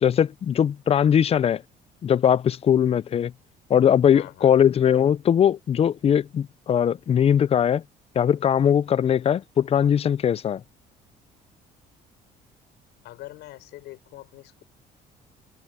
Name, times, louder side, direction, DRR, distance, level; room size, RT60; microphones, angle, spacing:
voice 1, 0.0-1.6 2.0-3.3 3.7-7.8 8.2-10.6, left 9 dB, 35° left, 0.5 m, -20 dB
voice 2, 4.1-4.6 13.0-14.6, left 17 dB, 85° left, 6.1 m, -43 dB
cardioid pair, 110°, 17 cm